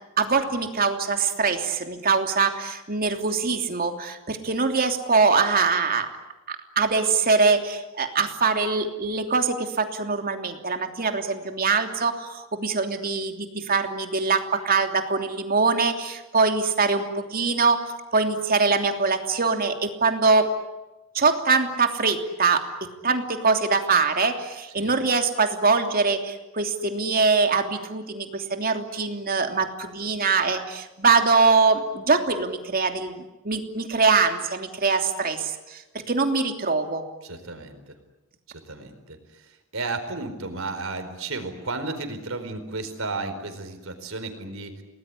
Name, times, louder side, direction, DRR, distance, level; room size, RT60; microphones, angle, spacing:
voice 1, 0.2-6.1 6.5-17.8 18.1-20.5 21.1-22.6 23.0-35.8 36.1-37.0, right 4 dB, 45° right, 5 dB, 3.0 m, -23 dB
voice 2, 37.2-37.8 38.7-39.4 39.7-44.8, right 3 dB, 70° right, 7 dB, 4.6 m, -33 dB
29.5 x 19.5 x 10.0 m, 1.0 s
head